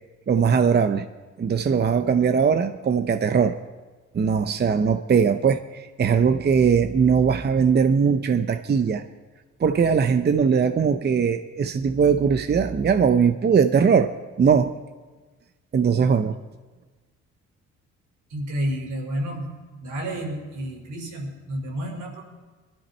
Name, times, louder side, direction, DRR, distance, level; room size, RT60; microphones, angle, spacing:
voice 1, 0.3-1.1 1.4-3.6 4.1-9.0 9.6-14.7 15.7-16.4, right 6 dB, 35° right, 8 dB, 0.7 m, -20 dB
voice 2, 18.3-19.5 19.8-22.2, right 1 dB, 80° right, 0 dB, 5.4 m, -30 dB
22.0 x 12.5 x 4.4 m, 1.3 s
cardioid pair, 90°, 30 cm